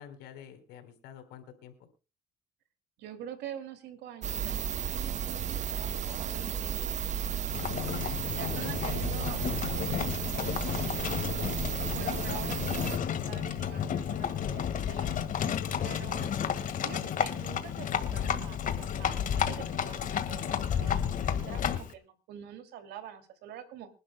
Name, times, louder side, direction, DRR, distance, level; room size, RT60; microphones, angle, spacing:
voice 1, 0.0-1.9 6.0-6.4 8.5-9.1 12.0-12.1 16.2-16.7, left 9 dB, 85° left, 7 dB, 4.0 m, -50 dB
voice 2, 3.0-4.6 4.9-7.0 8.3-11.5 11.9-15.2 15.8-16.3 16.8-23.9, right 9 dB, 80° right, 8 dB, 2.6 m, -46 dB
sound 1, 4.2-13.0, right 8 dB, 45° right, 0.8 m, -34 dB
Livestock farm animals working animals, 7.5-21.9, left 8 dB, 50° left, 1.7 m, -32 dB
25.5 x 11.5 x 2.2 m, 0.33 s
cardioid pair, 110°, 17 cm